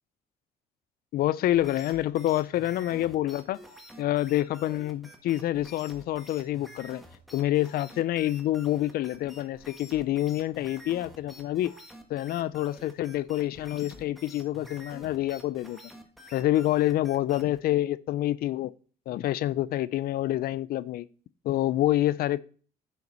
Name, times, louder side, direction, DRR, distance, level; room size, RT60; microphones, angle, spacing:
voice 1, 1.1-3.6 4.0-7.0 7.3-11.7 12.1-15.8 16.3-18.7 19.1-21.1 21.4-22.4, left 14 dB, 60° left, 0.4 m, -27 dB
sound 1, 1.5-17.6, equal, ahead, 1.5 m, -49 dB
10.5 x 5.8 x 4.0 m
cardioid pair, 110°, 17 cm